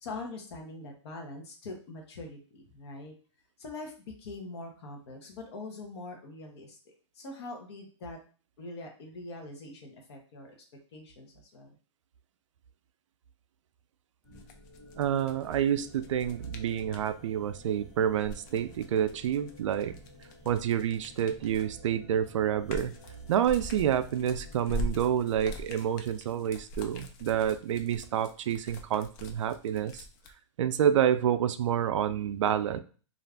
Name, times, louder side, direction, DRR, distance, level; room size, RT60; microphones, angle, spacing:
voice 1, 0.0-3.1 3.6-8.2 8.6-10.6 10.9-11.7, left 2 dB, 60° left, 2 dB, 0.9 m, -43 dB
sound 1, 14.2-26.2, left 1 dB, 20° left, 1.4 m, -54 dB
sound 2, 14.3-17.1 18.0-21.8 22.2-30.3, left 1 dB, 40° left, 0.5 m, -42 dB
voice 2, 15.0-19.9 20.5-22.9 23.3-30.1 30.6-32.8, right 9 dB, 80° right, 11 dB, 0.4 m, -28 dB
2.5 x 2.4 x 3.3 m, 0.38 s
hypercardioid pair, 140°, 16 cm